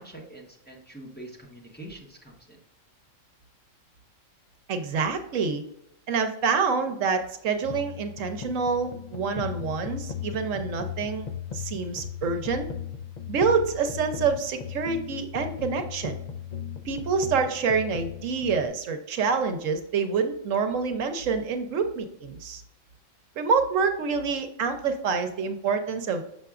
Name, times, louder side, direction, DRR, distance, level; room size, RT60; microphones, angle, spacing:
voice 1, 0.0-2.6, right 1 dB, 10° left, -2 dB, 1.1 m, -44 dB
voice 2, 4.7-5.6 6.1-11.3 11.5-12.7 13.3-16.2 16.9-22.6 23.4-26.2, right 5 dB, 75° right, 7 dB, 1.1 m, -27 dB
sound 1, 7.6-18.7, left 8 dB, 55° left, 0.5 m, -37 dB
6.7 x 5.8 x 2.4 m, 0.79 s
omnidirectional pair, 1.3 m